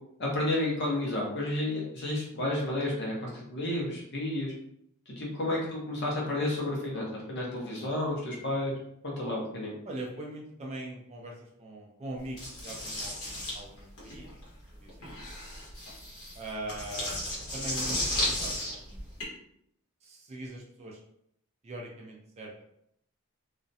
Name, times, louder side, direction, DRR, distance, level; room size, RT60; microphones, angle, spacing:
voice 1, 0.2-4.5 5.1-8.8 9.0-9.7, left 1 dB, 50° left, -3 dB, 0.8 m, -31 dB
voice 2, 9.9-14.3 14.8-15.2 16.4-19.3 20.0-21.0 21.6-22.6, right 1 dB, 30° right, -1 dB, 0.3 m, -42 dB
sound 1, 12.4-19.2, left 1 dB, 75° left, 1.0 m, -34 dB
2.4 x 2.1 x 2.6 m, 0.73 s
head